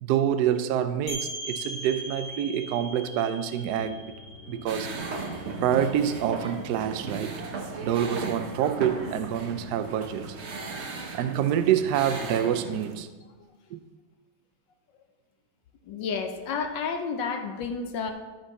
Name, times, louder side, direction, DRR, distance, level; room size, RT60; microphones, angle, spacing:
voice 1, 0.0-4.1 4.5-5.1 5.6-7.4 7.8-10.4 11.1-13.1 13.7-13.8, right 9 dB, 80° right, 10 dB, 0.9 m, -27 dB
sound 1, 1.1-6.6, right 1 dB, 85° left, 1.9 m, -40 dB
sound 2, 3.7-10.4, left 3 dB, 40° left, 1.5 m, -49 dB
sound 3, 4.7-12.9, right 4 dB, 55° right, 0.7 m, -36 dB
voice 2, 15.9-18.1, left 5 dB, 70° left, 6 dB, 1.3 m, -31 dB
13.0 x 5.3 x 4.1 m, 1.3 s
omnidirectional pair, 2.4 m